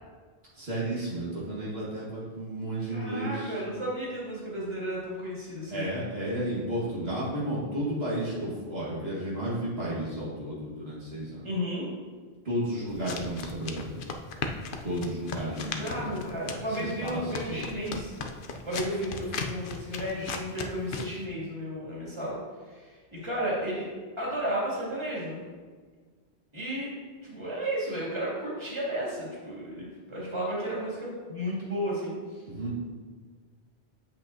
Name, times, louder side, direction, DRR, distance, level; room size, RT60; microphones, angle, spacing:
voice 1, 0.5-3.6 5.7-11.5 12.4-14.0 14.8-17.7 32.5-32.7, right 1 dB, 70° right, -7 dB, 1.9 m, -33 dB
voice 2, 2.9-5.9 11.4-11.9 15.4-18.1 18.6-22.4 22.7-23.9 24.2-25.5 26.5-32.4, equal, 25° right, -7 dB, 2.6 m, -33 dB
sound 1, 12.9-21.2, left 4 dB, 60° left, 0.8 m, -37 dB
8.3 x 7.6 x 2.7 m, 1.5 s
omnidirectional pair, 1.1 m